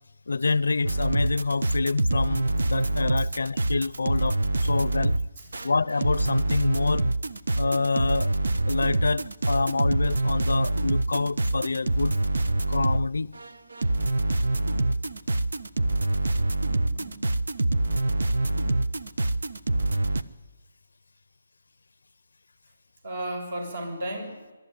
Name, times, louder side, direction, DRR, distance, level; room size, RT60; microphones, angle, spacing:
voice 1, 0.3-5.2 5.6-7.1 7.5-8.3 8.7-12.2 12.7-13.3, left 4 dB, 80° left, 0.6 m, -27 dB
sound 1, 0.8-13.1 13.3-20.2, right 2 dB, 80° right, 0.9 m, -25 dB
voice 2, 5.4-5.7 16.7-17.2 23.0-24.5, right 1 dB, 65° right, 7.1 m, -35 dB
22.5 x 12.5 x 10.0 m
figure-of-eight pair, 155°, 0 cm